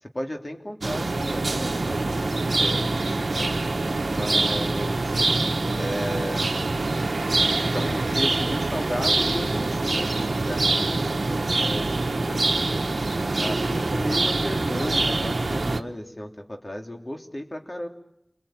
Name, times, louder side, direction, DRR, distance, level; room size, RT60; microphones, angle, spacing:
voice 1, 0.0-3.6 4.1-5.2 5.7-6.5 7.6-13.1 13.3-17.9, left 1 dB, 40° left, 3 dB, 3.1 m, -34 dB
sound 1, 0.8-15.8, right 3 dB, 85° right, 1.0 m, -25 dB
29.5 x 22.0 x 9.0 m, 0.82 s
wide cardioid pair, 45°, 0 cm